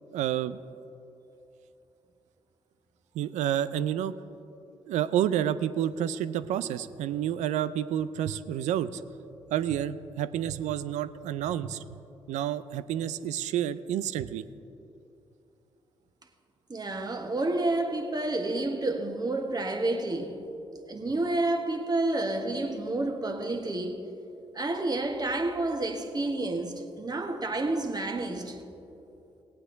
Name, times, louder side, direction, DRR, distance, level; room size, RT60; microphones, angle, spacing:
voice 1, 0.1-0.6 3.1-4.2 4.9-9.0 9.5-11.8 12.3-14.4, right 10 dB, 75° right, 0.5 m, -29 dB
voice 2, 16.7-20.5 20.9-24.1 24.5-28.6, right 2 dB, 35° right, 1.5 m, -30 dB
17.5 x 8.8 x 4.0 m
hypercardioid pair, 45°, 12 cm